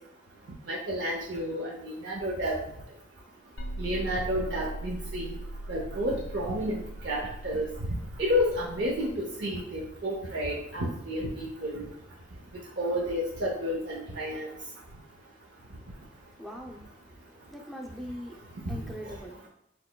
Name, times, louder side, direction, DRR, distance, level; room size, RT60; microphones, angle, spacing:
voice 1, 0.7-2.6 3.8-5.3 5.7-11.9 12.8-14.5 18.7-19.1, equal, 60° right, -3 dB, 0.7 m, -31 dB
sound 1, 3.6-9.1, right 1 dB, 85° left, 0.5 m, -40 dB
voice 2, 16.3-17.1 17.5-18.4 18.7-19.5, equal, ahead, 0 dB, 0.5 m, -41 dB
6.2 x 3.0 x 2.2 m, 0.75 s
head